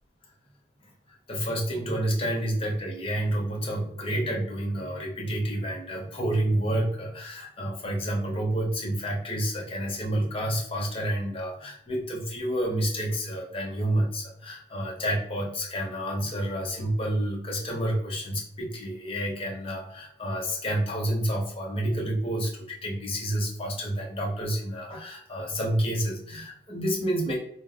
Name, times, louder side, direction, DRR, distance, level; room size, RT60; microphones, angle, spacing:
voice 1, 1.1-27.4, right 1 dB, 30° left, -1 dB, 0.8 m, -29 dB
2.4 x 2.0 x 3.8 m, 0.68 s
head